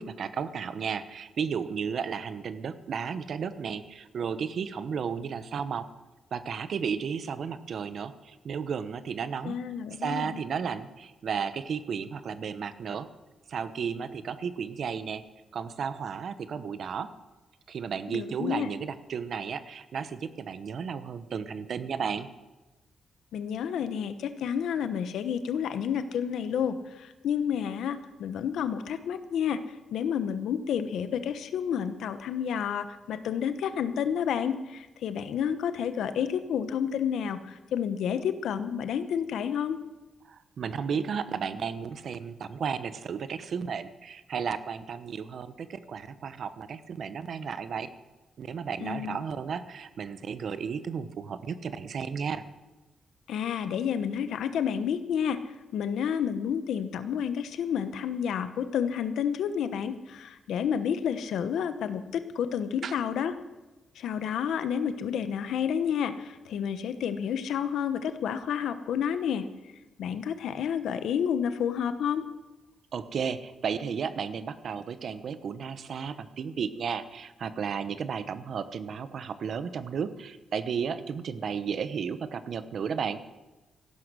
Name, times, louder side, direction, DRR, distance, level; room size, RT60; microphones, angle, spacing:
voice 1, 0.0-5.9 6.3-9.6 10.0-13.1 13.5-15.2 15.5-17.1 17.7-22.3 40.2-47.9 48.4-52.4 62.8-62.9 72.9-83.2, right 6 dB, 60° right, 13 dB, 0.9 m, -33 dB
voice 2, 9.4-10.4 18.1-18.7 23.3-29.6 29.9-39.8 48.8-49.2 53.3-55.4 55.7-63.3 64.0-69.4 70.0-72.2, left 8 dB, 90° left, 11 dB, 1.0 m, -30 dB
15.5 x 11.5 x 6.2 m, 1.1 s
cardioid pair, 125°, 0 cm